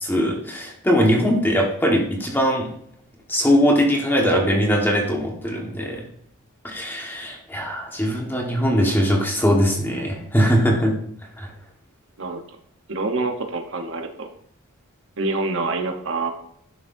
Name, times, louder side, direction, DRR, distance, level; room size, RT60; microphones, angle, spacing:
voice 1, 0.0-2.7 3.3-6.0 6.6-11.0 11.4-11.5, equal, 10° left, 0 dB, 1.4 m, -21 dB
voice 2, 12.9-14.3 15.2-16.3, right 3 dB, 60° right, 4 dB, 1.0 m, -26 dB
11.5 x 6.1 x 2.6 m, 0.68 s
head